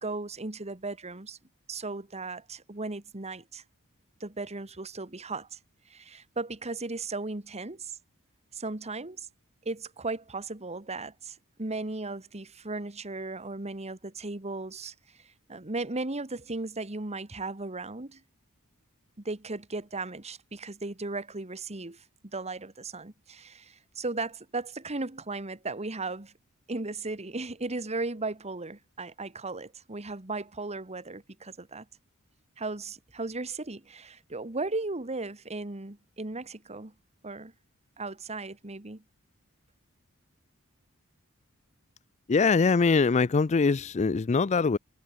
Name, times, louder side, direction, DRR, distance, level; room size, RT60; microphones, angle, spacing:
voice 1, 0.0-1.4 1.7-3.6 4.2-5.6 5.9-8.0 8.5-9.3 9.7-14.9 15.2-18.2 19.3-22.0 22.3-26.3 26.7-31.9 32.6-36.9 37.2-37.5 38.0-39.0, right 3 dB, 30° right, 1.7 m, -36 dB
voice 2, 42.3-44.8, left 4 dB, 30° left, 0.4 m, -23 dB
head